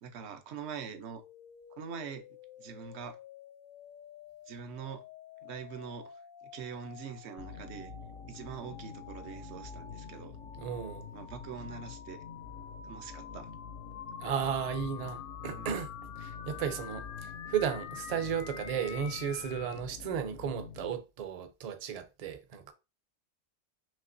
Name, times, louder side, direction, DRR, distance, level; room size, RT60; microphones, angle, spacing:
voice 1, 0.0-1.2 1.8-2.2 2.6-3.2 4.5-5.0 5.4-6.1 6.5-7.9 8.3-10.4 11.1-12.2 12.8-13.5 15.5-15.8, right 6 dB, 75° right, 0.9 m, -43 dB
sound 1, 0.9-19.8, left 7 dB, 60° left, 0.6 m, -48 dB
sound 2, 7.4-20.9, left 6 dB, 85° left, 0.9 m, -47 dB
voice 2, 10.6-11.1 14.2-15.9 16.2-22.7, right 7 dB, 45° right, 0.5 m, -34 dB
5.6 x 2.9 x 2.5 m
omnidirectional pair, 1.1 m